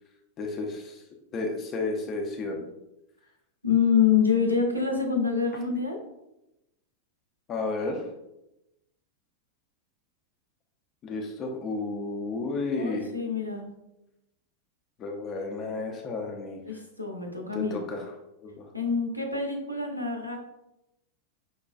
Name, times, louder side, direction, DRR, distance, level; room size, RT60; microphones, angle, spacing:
voice 1, 0.4-1.0 1.3-2.6 7.5-8.1 11.0-13.1 15.0-16.6 17.5-18.0 18.4-18.7, left 3 dB, 30° left, 2 dB, 0.6 m, -32 dB
voice 2, 3.6-6.0 12.7-13.7 16.7-17.8 18.7-20.4, left 6 dB, 90° right, 2 dB, 0.6 m, -26 dB
5.3 x 2.3 x 2.3 m, 0.91 s
figure-of-eight pair, 90°, 0 cm